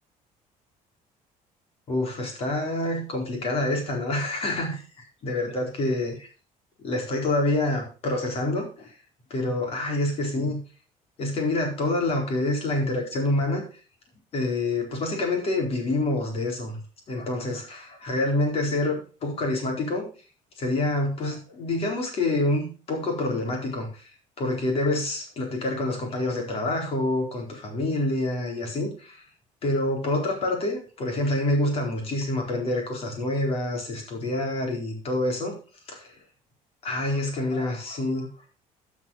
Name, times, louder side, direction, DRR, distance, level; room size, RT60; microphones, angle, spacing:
voice 1, 1.9-4.8 5.2-6.1 6.8-8.9 9.3-10.6 11.2-13.6 14.3-16.8 17.1-20.1 20.6-24.1 24.4-29.2 29.6-35.6 35.9-36.2 36.8-38.3, left 2 dB, 40° left, 2 dB, 4.3 m, -27 dB
12.5 x 6.2 x 5.6 m, 0.36 s
cardioid pair, 160°, 15 cm